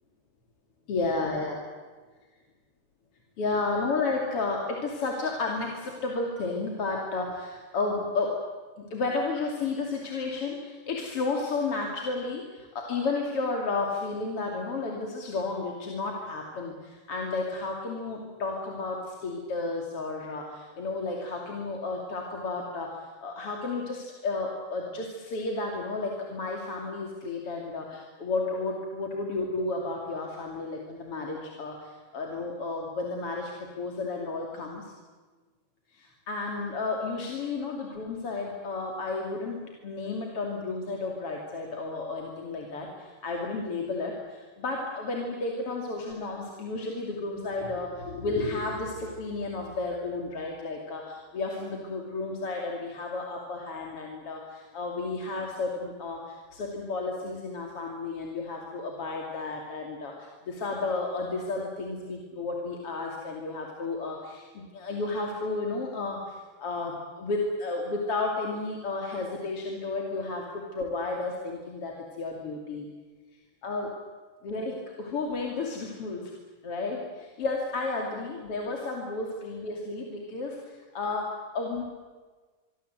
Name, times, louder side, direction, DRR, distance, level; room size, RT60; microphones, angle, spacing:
voice 1, 0.9-1.6 3.4-8.4 8.8-34.9 35.9-72.9 73.6-73.9 74.4-76.3 76.6-81.8, left 3 dB, 40° left, 0 dB, 3.2 m, -32 dB
26.0 x 23.5 x 8.0 m, 1.4 s
omnidirectional pair, 4.4 m